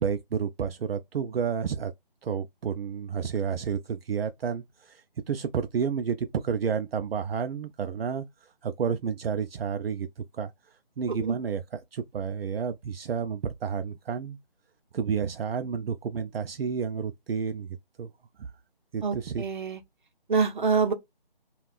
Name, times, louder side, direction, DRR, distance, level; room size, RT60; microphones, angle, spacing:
voice 1, 0.0-1.9 2.2-10.5 11.0-14.4 14.9-18.1 18.4-18.5 18.9-19.4, right 6 dB, 75° right, 0.4 m, -31 dB
voice 2, 19.0-19.8 20.3-20.9, right 5 dB, 55° right, 0.8 m, -26 dB
3.5 x 2.3 x 2.3 m
figure-of-eight pair, 165°, 29 cm